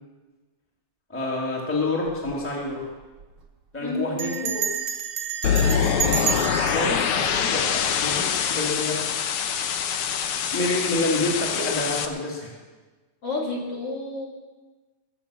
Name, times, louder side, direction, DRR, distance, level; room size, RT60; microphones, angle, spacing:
voice 1, 1.1-2.9 3.7-4.6 5.6-9.1 10.5-12.5, left 2 dB, 5° left, -3 dB, 2.4 m, -28 dB
Bell, 2.1-2.4 2.7-2.8 3.0-3.4 4.2-8.3, right 7 dB, 50° right, 1.7 m, -30 dB
voice 2, 3.8-4.5 13.2-14.3, left 2 dB, 50° left, -3 dB, 3.2 m, -30 dB
sound 1, 5.4-12.1, left 8 dB, 80° left, 1.2 m, -24 dB
22.0 x 7.4 x 7.1 m, 1.3 s
omnidirectional pair, 3.6 m